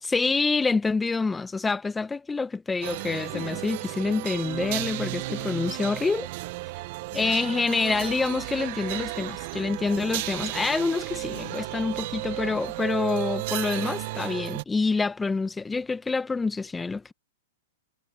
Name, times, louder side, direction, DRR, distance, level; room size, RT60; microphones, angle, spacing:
voice 1, 0.0-6.3 7.1-17.1, left 4 dB, 10° left, 1.1 m, -27 dB
sound 1, 2.8-14.6, right 21 dB, 55° right, 0.8 m, -33 dB
sound 2, 3.3-3.6 5.3-5.7 7.1-7.4 9.1-9.4 11.3-11.6 13.7-14.0, left 21 dB, 40° left, 1.5 m, -43 dB
hypercardioid pair, 125°, 0 cm